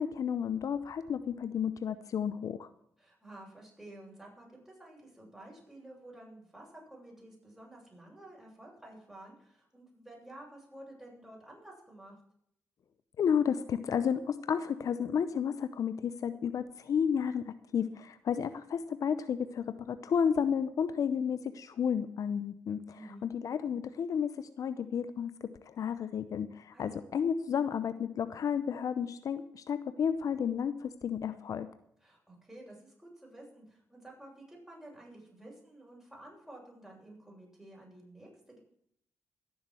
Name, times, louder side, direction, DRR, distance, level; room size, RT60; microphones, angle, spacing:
voice 1, 0.0-2.7 13.2-22.8 23.2-25.3 25.6-31.7, left 7 dB, 65° left, 12 dB, 0.7 m, -32 dB
voice 2, 3.0-12.1 22.9-23.3 26.7-27.1 32.0-38.6, right 1 dB, 10° right, -3 dB, 7.6 m, -52 dB
16.5 x 7.2 x 7.7 m, 0.71 s
cardioid pair, 70°, 6 cm